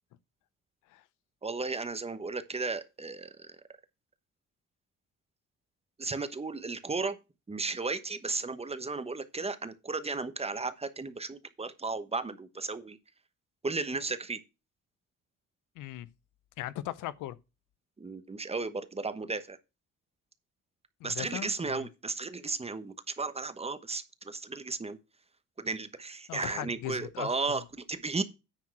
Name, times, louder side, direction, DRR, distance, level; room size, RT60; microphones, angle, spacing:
voice 1, 1.4-3.5 6.0-7.2 7.5-13.0 13.6-14.4 18.0-19.6 21.0-25.0 25.6-28.2, right 3 dB, 20° right, 1.0 m, -34 dB
voice 2, 15.8-16.1 16.6-17.4 21.0-21.9 26.3-27.6, left 13 dB, 90° left, 0.6 m, -39 dB
9.8 x 4.5 x 5.9 m
cardioid pair, 90°, 30 cm